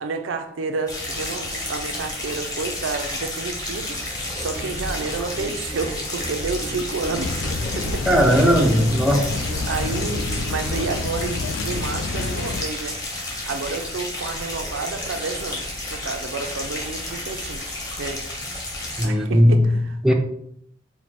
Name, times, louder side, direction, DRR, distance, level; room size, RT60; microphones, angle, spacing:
voice 1, 0.0-4.0 4.4-7.5 7.7-8.3 9.7-13.0 13.5-17.6 18.0-18.2 19.0-20.1, right 4 dB, 80° right, 0.5 m, -30 dB
sound 1, 0.9-19.1, left 1 dB, 20° left, 0.9 m, -31 dB
sound 2, 4.3-10.9, right 1 dB, 40° left, 1.6 m, -35 dB
sound 3, 7.1-12.6, left 3 dB, 80° left, 0.4 m, -29 dB
voice 2, 8.1-9.3 19.0-19.7 20.0-20.1, equal, 5° right, 0.4 m, -17 dB
4.5 x 2.1 x 4.2 m
head